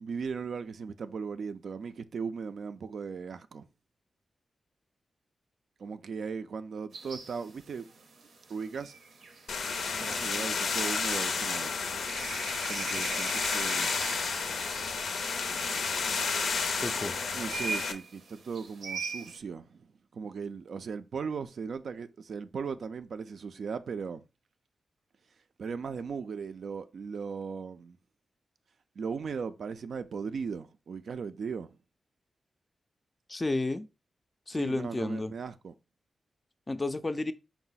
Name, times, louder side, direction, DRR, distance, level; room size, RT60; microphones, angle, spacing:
voice 1, 0.0-3.6 5.8-7.9 8.5-9.0 9.9-11.7 12.7-13.9 17.3-19.9 20.1-24.2 25.6-28.0 29.0-31.8 34.5-35.7, right 5 dB, 70° right, 0.3 m, -37 dB
sound 1, 6.9-19.4, right 4 dB, 90° right, 0.7 m, -43 dB
sound 2, 9.5-17.9, left 5 dB, 85° left, 0.5 m, -31 dB
voice 2, 16.8-17.2 33.3-33.9 34.5-35.3 36.7-37.3, left 2 dB, 25° left, 0.3 m, -31 dB
4.6 x 2.0 x 3.9 m
cardioid pair, 90°, 0 cm